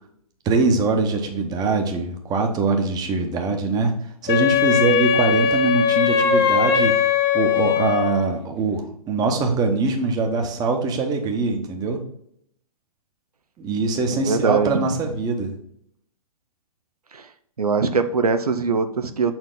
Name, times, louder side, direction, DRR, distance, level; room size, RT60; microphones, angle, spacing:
voice 1, 0.4-3.9 4.2-7.0 7.3-12.0 13.6-15.5, right 3 dB, 20° right, 4 dB, 1.1 m, -23 dB
Wind instrument woodwind instrument, 4.3-8.4, left 7 dB, 45° left, 0.8 m, -20 dB
voice 2, 14.1-14.8 17.1-17.3 17.6-19.3, right 4 dB, 85° right, 8 dB, 0.6 m, -22 dB
6.5 x 4.5 x 3.9 m, 0.70 s
figure-of-eight pair, 120°, 19 cm